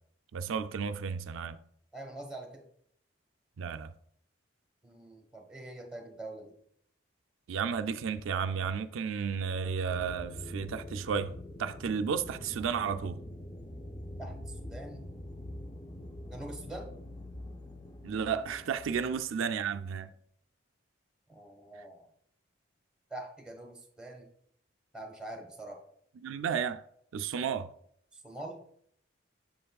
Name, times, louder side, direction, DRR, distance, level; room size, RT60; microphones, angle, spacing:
voice 1, 0.3-1.6 3.6-3.9 7.5-11.3 11.6-13.2 18.0-20.1 26.2-26.8 27.1-27.7, right 6 dB, 85° right, 0.4 m, -32 dB
voice 2, 1.9-2.6 4.8-6.5 14.2-14.3 14.6-15.0 16.3-16.9 19.0-19.1 21.3-22.1 23.1-24.3 24.9-25.8 28.1-28.6, right 1 dB, 5° right, 1.2 m, -44 dB
sound 1, 9.9-19.1, left 1 dB, 20° left, 0.5 m, -44 dB
7.6 x 7.2 x 2.3 m
head